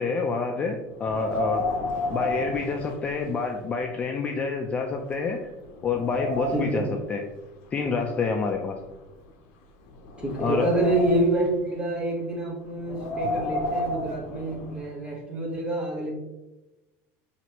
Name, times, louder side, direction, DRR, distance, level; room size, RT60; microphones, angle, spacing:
voice 1, 0.0-1.7 2.1-5.4 5.8-7.2 7.7-8.8 10.4-10.7 13.2-13.3, left 4 dB, 20° left, 3 dB, 0.3 m, -27 dB
Wind, 1.0-3.6 3.9-4.0 4.7-4.8 5.3-6.9 7.8-9.3 9.9-11.5 12.7-14.9, left 1 dB, 70° left, 0.6 m, -32 dB
voice 2, 6.5-7.0 10.2-16.1, right 2 dB, 15° right, -1 dB, 1.0 m, -27 dB
5.9 x 3.0 x 2.9 m, 1.0 s
cardioid pair, 170°, 7 cm